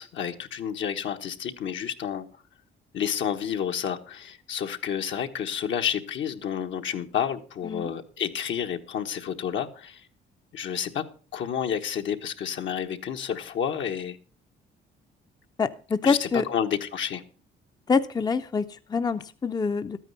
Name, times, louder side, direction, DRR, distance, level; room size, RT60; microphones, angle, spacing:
voice 1, 0.0-2.3 2.9-10.1 10.5-11.0 11.3-14.2 16.0-17.2, left 8 dB, 70° left, 5 dB, 1.2 m, -30 dB
voice 2, 15.6-16.4 17.9-20.0, left 5 dB, 20° left, 10 dB, 0.5 m, -26 dB
12.5 x 9.1 x 5.4 m, 0.39 s
cardioid pair, 90°, 20 cm